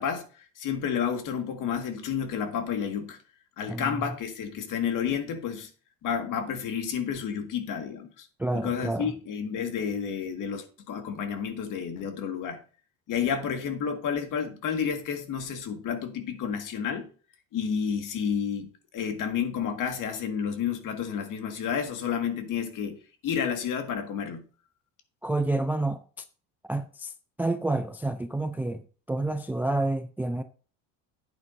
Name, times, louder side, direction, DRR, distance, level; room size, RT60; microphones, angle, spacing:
voice 1, 0.0-3.2 3.6-5.7 6.0-8.3 8.5-12.6 13.1-17.1 17.5-18.7 18.9-23.0 23.2-24.4, left 7 dB, 55° left, 1.9 m, -30 dB
voice 2, 3.7-4.1 8.4-9.1 25.2-26.2 26.6-27.1 27.4-30.4, right 2 dB, 5° right, 0.4 m, -29 dB
10.5 x 8.9 x 2.6 m
supercardioid pair, 100°, 38 cm